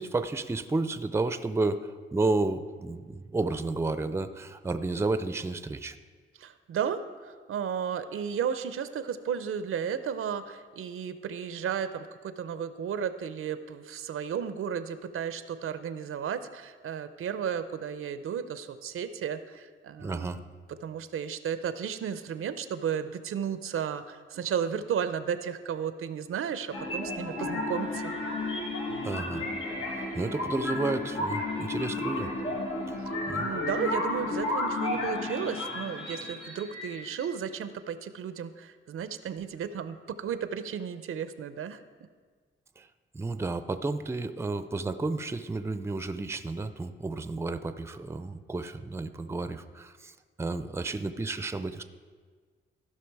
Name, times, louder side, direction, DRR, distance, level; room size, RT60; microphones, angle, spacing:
voice 1, 0.0-6.0 20.0-20.4 29.0-29.5 29.9-32.3 32.9-33.0 33.3-33.5 42.8-42.9 43.1-51.8, right 3 dB, 10° right, 12 dB, 0.4 m, -31 dB
voice 2, 6.4-20.4 20.8-28.1 33.0-41.8, right 8 dB, 85° right, 12 dB, 0.6 m, -34 dB
sound 1, 26.7-37.3, left 2 dB, 90° left, 1.9 m, -32 dB
15.0 x 5.8 x 4.6 m, 1.5 s
wide cardioid pair, 110°, 21 cm